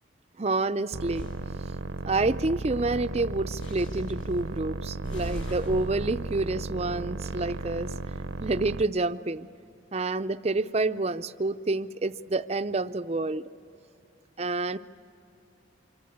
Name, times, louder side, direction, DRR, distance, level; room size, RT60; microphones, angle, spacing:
voice 1, 0.4-1.3 2.1-8.0 8.4-9.5 9.9-13.5 14.4-14.8, right 2 dB, 30° right, 11 dB, 0.5 m, -28 dB
sound 1, 0.9-8.8, right 3 dB, 80° right, 0.8 m, -35 dB
sound 2, 1.1-1.4 3.6-4.3 5.0-7.7, equal, 85° left, 7.2 m, -44 dB
26.5 x 24.5 x 8.5 m, 2.8 s
head